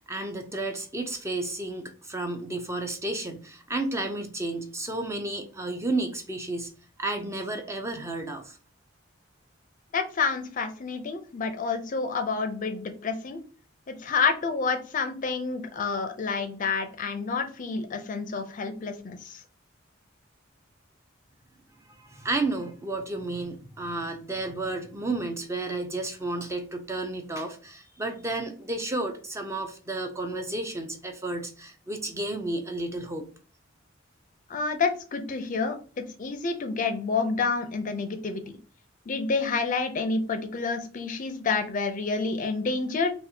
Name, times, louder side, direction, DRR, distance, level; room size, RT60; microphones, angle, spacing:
voice 1, 0.1-6.7 7.0-8.6 21.9-33.2, right 2 dB, 15° right, 5 dB, 0.4 m, -32 dB
voice 2, 9.9-13.4 13.9-19.4 34.5-38.4 39.1-43.1, left 4 dB, 40° left, 8 dB, 0.4 m, -29 dB
4.1 x 2.4 x 2.7 m, 0.39 s
head